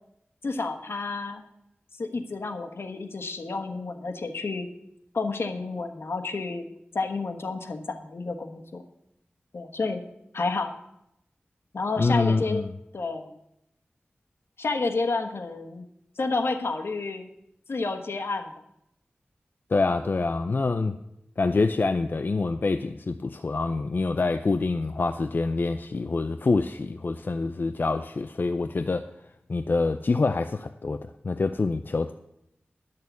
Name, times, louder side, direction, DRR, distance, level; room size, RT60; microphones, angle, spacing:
voice 1, 0.4-1.4 2.0-4.7 5.1-6.7 6.9-8.8 9.5-10.0 10.3-10.7 11.7-13.3 14.6-15.9 16.2-17.3 17.7-18.5, left 3 dB, 75° left, 5 dB, 1.3 m, -30 dB
voice 2, 12.0-12.7 19.7-21.0 21.4-29.1 29.5-32.1, left 3 dB, 55° left, 8 dB, 0.5 m, -26 dB
11.0 x 6.6 x 8.3 m, 0.81 s
wide cardioid pair, 85°, 4 cm